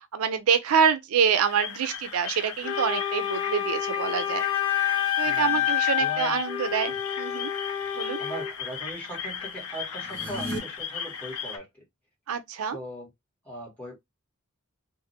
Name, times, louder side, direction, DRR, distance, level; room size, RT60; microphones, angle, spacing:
voice 1, 0.1-4.4 5.2-7.5 8.0-8.2 12.3-12.8, right 7 dB, 75° right, 0.4 m, -26 dB
sound 1, 1.5-11.6, left 7 dB, 90° left, 0.5 m, -37 dB
Wind instrument woodwind instrument, 2.6-8.5, left 11 dB, 65° left, 0.9 m, -28 dB
voice 2, 5.2-5.7 5.9-6.4 6.9-7.0 8.2-11.8 12.7-13.1 13.4-14.0, right 1 dB, 5° left, 1.5 m, -39 dB
sound 2, 10.0-10.6, right 1 dB, 55° right, 0.8 m, -34 dB
2.7 x 2.4 x 2.7 m
head